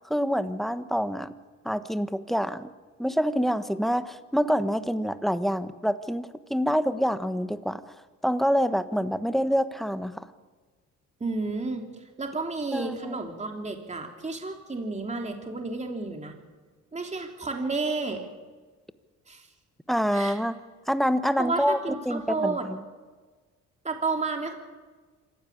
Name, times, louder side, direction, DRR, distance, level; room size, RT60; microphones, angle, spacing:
voice 1, 0.1-1.3 1.6-2.7 3.0-7.8 8.2-10.3 12.7-13.1 19.9-20.5 20.9-21.8 22.1-22.8, equal, ahead, 11 dB, 1.3 m, -26 dB
voice 2, 11.2-16.3 16.9-18.3 19.3-19.5 20.1-20.4 21.4-22.7 23.8-24.6, right 3 dB, 25° right, 3 dB, 3.2 m, -31 dB
26.0 x 15.5 x 8.6 m, 1.4 s
cardioid pair, 90°, 30 cm